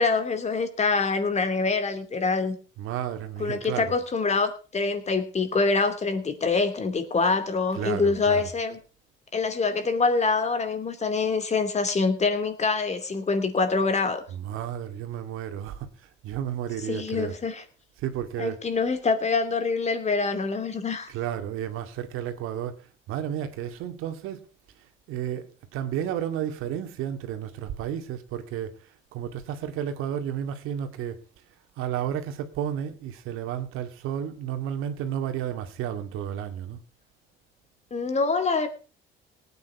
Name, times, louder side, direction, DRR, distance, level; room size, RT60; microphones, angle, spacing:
voice 1, 0.0-2.6 3.4-8.8 9.3-14.2 16.9-17.6 18.4-21.1 37.9-38.7, left 4 dB, 30° left, 2.7 m, -25 dB
voice 2, 2.8-4.0 7.7-8.5 14.3-15.9 16.2-17.3 18.0-18.6 21.1-22.7 23.1-24.4 25.1-28.7 29.1-31.2 31.8-36.8, right 10 dB, 80° right, 2.2 m, -32 dB
18.5 x 9.6 x 4.8 m
cardioid pair, 100°, 21 cm